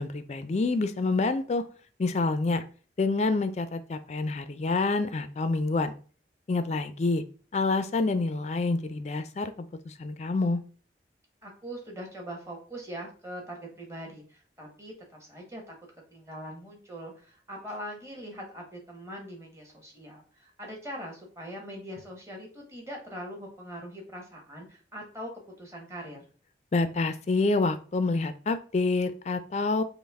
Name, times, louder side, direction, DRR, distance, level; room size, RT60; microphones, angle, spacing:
voice 1, 0.0-1.6 2.0-2.6 3.0-5.9 6.5-7.2 7.5-10.6 26.7-29.8, left 3 dB, 40° left, 11 dB, 0.3 m, -27 dB
voice 2, 11.4-15.7 16.1-25.3 25.6-26.3, equal, 15° right, 0 dB, 1.0 m, -42 dB
5.2 x 2.1 x 3.4 m, 0.39 s
head